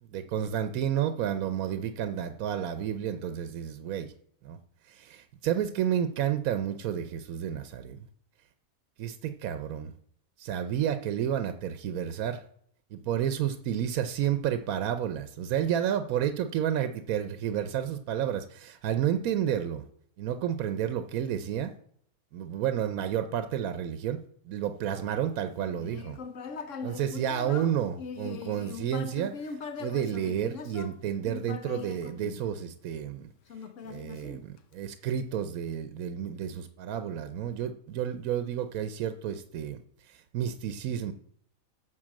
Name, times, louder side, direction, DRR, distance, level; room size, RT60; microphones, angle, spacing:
voice 1, 0.1-4.1 4.4-4.6 4.9-8.1 9.0-9.9 10.4-12.4 12.9-19.9 20.2-21.7 22.3-26.2 26.8-33.3 33.8-39.8 40.1-41.1, right 9 dB, 80° right, 9 dB, 1.1 m, -31 dB
Human voice, 25.5-32.9 33.5-34.9, left 5 dB, 65° left, 1.1 m, -41 dB
12.0 x 4.2 x 7.5 m, 0.66 s
omnidirectional pair, 1.5 m